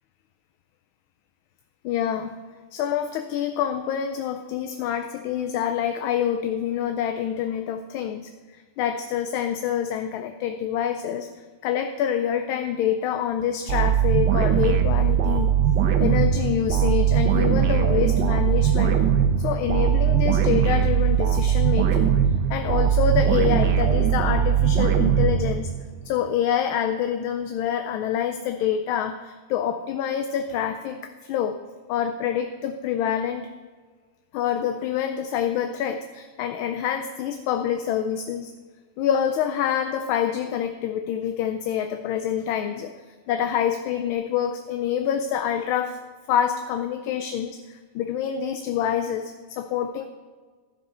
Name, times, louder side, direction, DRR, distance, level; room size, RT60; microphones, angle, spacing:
voice 1, 1.8-2.3 2.7-11.3 11.6-15.5 16.0-19.0 19.4-22.1 22.5-25.7 26.0-31.6 31.9-33.5 34.3-38.5 39.0-42.9 43.3-46.0 46.3-47.6 47.9-50.0, left 9 dB, 80° left, 6 dB, 1.4 m, -26 dB
sound 1, 13.7-26.0, right 9 dB, 65° right, 1.4 m, -20 dB
15.0 x 5.2 x 5.4 m, 1.5 s
omnidirectional pair, 2.3 m